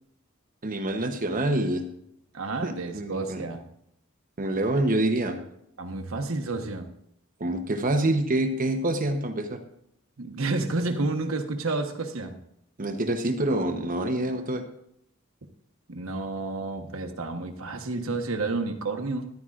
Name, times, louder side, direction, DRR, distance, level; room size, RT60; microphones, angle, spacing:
voice 1, 0.6-1.9 2.6-3.4 4.4-5.4 7.4-9.6 12.8-14.6, right 1 dB, 40° right, 6 dB, 0.9 m, -26 dB
voice 2, 2.3-3.6 5.8-6.9 10.2-12.4 15.9-19.3, right 3 dB, 75° right, 6 dB, 1.2 m, -30 dB
13.5 x 11.5 x 2.5 m, 0.74 s
head